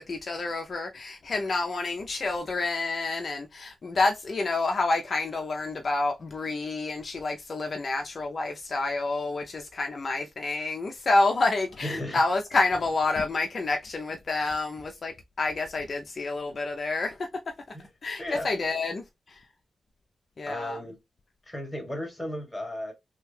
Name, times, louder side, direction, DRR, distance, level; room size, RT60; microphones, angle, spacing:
voice 1, 0.0-17.3 18.0-19.4 20.4-20.8, left 3 dB, 50° left, 0.4 m, -28 dB
voice 2, 11.8-12.2 17.7-17.9 18.2-18.5 20.5-21.0 21.4-22.9, left 1 dB, 10° left, 1.3 m, -35 dB
3.3 x 2.2 x 3.2 m
cardioid pair, 95°, 0 cm